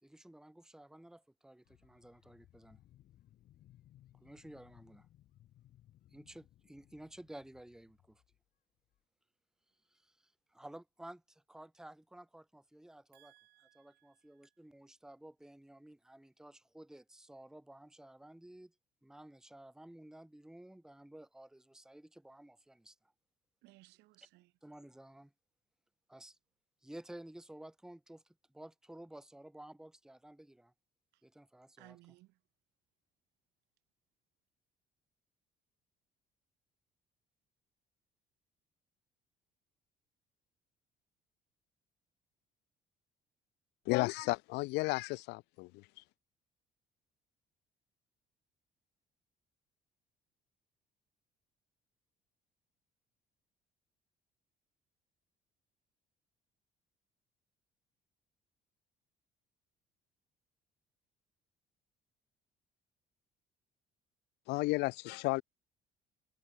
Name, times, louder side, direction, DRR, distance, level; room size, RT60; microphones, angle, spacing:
voice 1, 0.0-2.8 4.1-5.1 6.1-8.2 9.9-13.3 13.7-18.7 19.0-23.1 24.6-25.3 26.1-26.4 26.8-30.7 31.2-32.0, right 1 dB, 5° right, 1.1 m, -53 dB
sound 1, 1.6-8.4 8.9-9.0, left 13 dB, 65° left, 2.8 m, -64 dB
voice 2, 13.1-14.6 23.6-24.5 31.1-31.2 31.8-32.4, right 20 dB, 90° right, 5.8 m, -62 dB
voice 3, 43.9-45.8 64.5-65.4, left 23 dB, 90° left, 0.4 m, -33 dB
cardioid pair, 110°, 17 cm